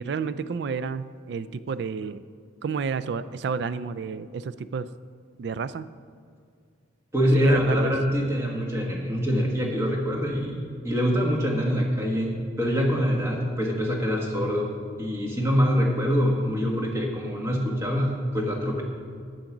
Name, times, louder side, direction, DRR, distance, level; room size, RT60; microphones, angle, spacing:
voice 1, 0.0-2.2 2.6-4.9 5.4-5.9 7.4-7.9, right 5 dB, 60° right, 15 dB, 0.3 m, -30 dB
voice 2, 7.1-14.7 15.0-18.8, equal, 15° right, -1 dB, 1.3 m, -24 dB
7.9 x 7.6 x 6.0 m, 2.2 s
head